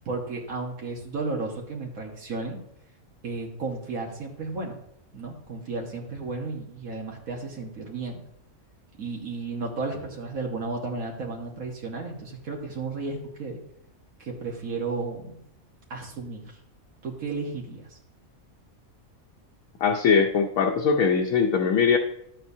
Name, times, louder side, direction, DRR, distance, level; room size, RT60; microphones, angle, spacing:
voice 1, 0.1-2.6 3.2-4.8 5.1-8.2 9.0-13.6 14.2-15.4 15.9-16.6 17.0-18.0, right 3 dB, 75° right, 0 dB, 1.7 m, -33 dB
voice 2, 19.8-22.0, left 5 dB, 75° left, 1 dB, 1.1 m, -21 dB
11.5 x 7.6 x 2.7 m, 0.77 s
omnidirectional pair, 1.5 m